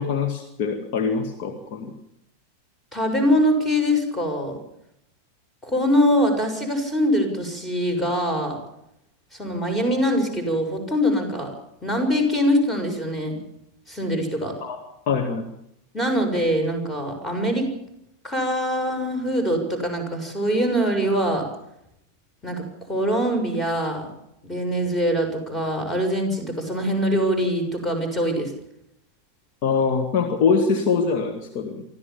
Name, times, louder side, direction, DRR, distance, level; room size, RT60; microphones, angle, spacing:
voice 1, 0.0-1.9 14.6-14.8 15.1-15.4 29.6-31.8, left 5 dB, 45° left, 4 dB, 2.2 m, -23 dB
voice 2, 2.9-4.6 5.6-8.6 9.3-11.5 11.8-13.4 13.9-14.5 15.9-17.7 18.2-21.5 22.4-24.1 24.4-28.5, equal, 10° left, 6 dB, 6.6 m, -23 dB
24.5 x 15.0 x 7.3 m, 0.78 s
figure-of-eight pair, 90°, 0 cm